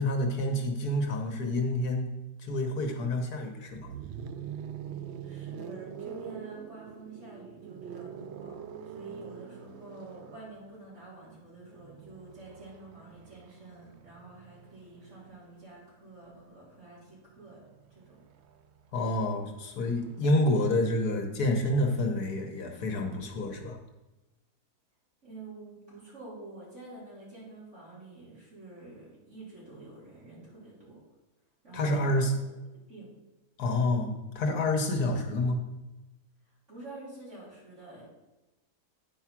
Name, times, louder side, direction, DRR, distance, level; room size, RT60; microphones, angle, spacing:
voice 1, 0.0-2.1 2.4-3.9 18.9-23.8 31.7-32.3 33.6-35.6, left 1 dB, 70° left, 3 dB, 1.6 m, -28 dB
sound 1, 3.7-15.6 16.9-20.5, right 8 dB, 75° right, 0.6 m, -45 dB
voice 2, 5.2-8.6 8.8-18.2 25.2-31.0 31.6-32.3 32.7-33.2 36.7-38.1, right 2 dB, 45° right, -7 dB, 3.9 m, -48 dB
9.7 x 4.8 x 5.9 m, 1.1 s
omnidirectional pair, 1.7 m